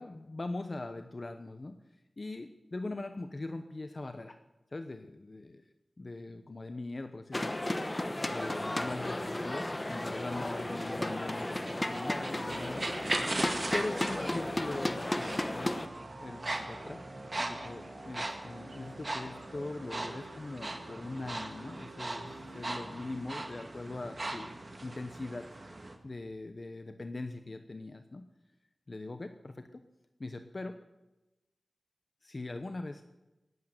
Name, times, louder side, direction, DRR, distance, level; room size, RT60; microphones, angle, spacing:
voice 1, 0.0-1.8 2.2-4.4 4.7-5.6 6.0-7.6 8.3-12.9 13.7-15.8 16.2-17.0 17.4-24.5 24.8-25.5 26.0-28.2 28.9-29.8 30.2-30.7 32.2-33.0, left 2 dB, 50° left, 8 dB, 0.9 m, -41 dB
sound 1, 7.3-15.9, left 1 dB, 25° left, 1.1 m, -34 dB
sound 2, 8.2-25.9, right 2 dB, 40° right, 1.9 m, -40 dB
sound 3, 12.5-26.4, right 2 dB, 70° right, 4.0 m, -51 dB
18.5 x 8.6 x 7.9 m, 1.0 s
wide cardioid pair, 70°, 0 cm